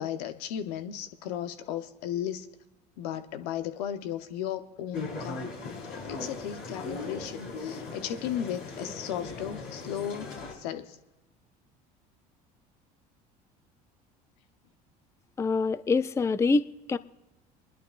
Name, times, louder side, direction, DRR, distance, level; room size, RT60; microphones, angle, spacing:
voice 1, 0.0-2.5 3.0-5.5 5.9-11.0, left 10 dB, 80° left, 0.8 m, -35 dB
sound 1, 4.9-10.5, left 3 dB, 65° left, 4.5 m, -39 dB
voice 2, 15.4-17.0, left 4 dB, 15° left, 0.4 m, -25 dB
28.5 x 11.0 x 2.5 m
supercardioid pair, 85°, 20 cm